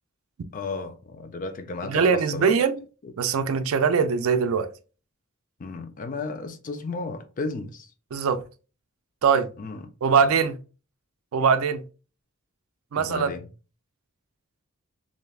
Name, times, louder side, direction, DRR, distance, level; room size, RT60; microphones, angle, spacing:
voice 1, 0.5-2.6 5.6-7.9 9.6-9.9 13.0-13.4, left 3 dB, 40° left, 0.4 m, -33 dB
voice 2, 1.8-2.8 3.2-4.7 8.1-8.4 9.2-9.5 10.0-10.6 11.3-11.8 12.9-13.3, right 6 dB, 75° right, 0.4 m, -22 dB
3.3 x 2.6 x 2.3 m
head